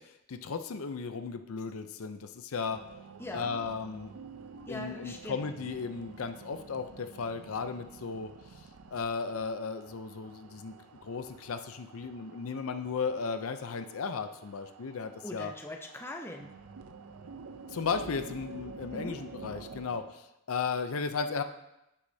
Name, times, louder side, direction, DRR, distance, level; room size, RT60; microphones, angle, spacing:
voice 1, 0.3-2.8 3.3-4.1 4.7-8.3 8.9-10.8 11.0-15.5 17.7-21.4, left 5 dB, 75° left, 9 dB, 0.5 m, -35 dB
sound 1, 2.7-20.1, right 4 dB, 85° right, 0.6 m, -49 dB
voice 2, 3.2-3.6 4.7-5.4 15.2-16.5 18.9-19.2, left 1 dB, 10° left, 3 dB, 0.5 m, -41 dB
8.4 x 8.2 x 2.7 m, 0.88 s
head